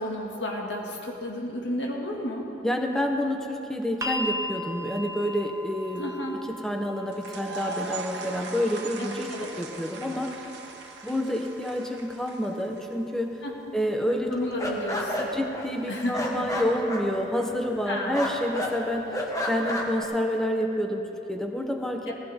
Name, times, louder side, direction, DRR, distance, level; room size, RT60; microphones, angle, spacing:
voice 1, 0.0-2.5 6.0-6.4 9.0-9.5 13.4-13.8 14.3-15.3 15.9-16.7 17.9-18.2 22.1-22.2, left 1 dB, 70° left, -1 dB, 2.0 m, -32 dB
voice 2, 2.6-6.0 6.5-10.3 11.0-13.4 13.7-14.3 15.3-19.1 19.5-22.1, equal, 5° left, 3 dB, 0.9 m, -28 dB
sound 1, 4.0-16.1 17.2-17.3, left 1 dB, 15° right, 0.5 m, -40 dB
sound 2, 7.1-13.1, right 3 dB, 65° right, 1.4 m, -40 dB
sound 3, 14.3-17.9 18.1-18.7 19.1-20.0, left 1 dB, 20° left, 1.3 m, -31 dB
17.5 x 15.5 x 3.5 m, 2.9 s
head